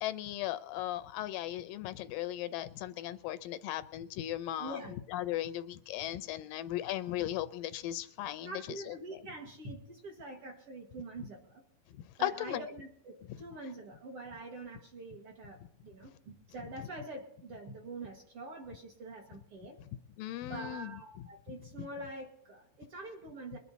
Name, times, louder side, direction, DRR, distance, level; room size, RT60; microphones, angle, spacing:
voice 1, 0.0-4.8 5.1-9.0 12.2-12.6 20.2-20.9, left 13 dB, 80° left, 2.3 m, -37 dB
voice 2, 4.6-4.9 8.4-11.6 12.2-19.8 20.5-23.6, right 2 dB, 50° right, 2.1 m, -45 dB
22.0 x 10.0 x 4.1 m
omnidirectional pair, 4.0 m